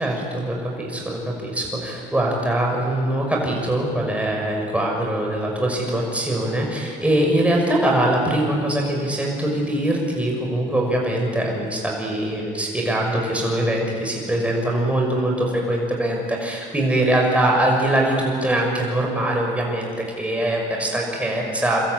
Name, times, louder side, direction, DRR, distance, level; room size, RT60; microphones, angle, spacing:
voice 1, 0.0-21.8, right 1 dB, 5° right, -1 dB, 6.3 m, -22 dB
25.5 x 13.5 x 8.6 m, 2.1 s
supercardioid pair, 85°, 17 cm